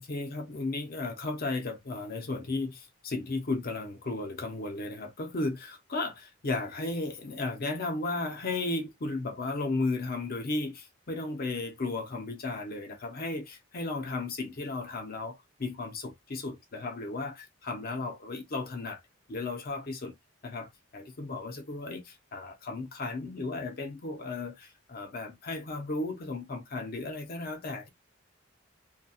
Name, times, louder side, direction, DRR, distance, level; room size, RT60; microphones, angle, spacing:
voice 1, 0.0-19.0 19.3-20.1 20.4-20.7 20.9-27.9, left 3 dB, 50° left, 0.6 m, -34 dB
2.7 x 2.2 x 2.3 m
head